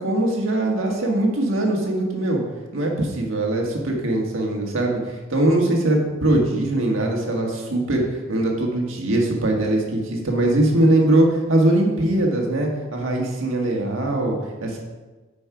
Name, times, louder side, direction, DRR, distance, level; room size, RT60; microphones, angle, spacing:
voice 1, 0.0-2.4 2.7-14.8, right 1 dB, 75° right, 0 dB, 1.6 m, -21 dB
8.8 x 5.3 x 4.8 m, 1.2 s
head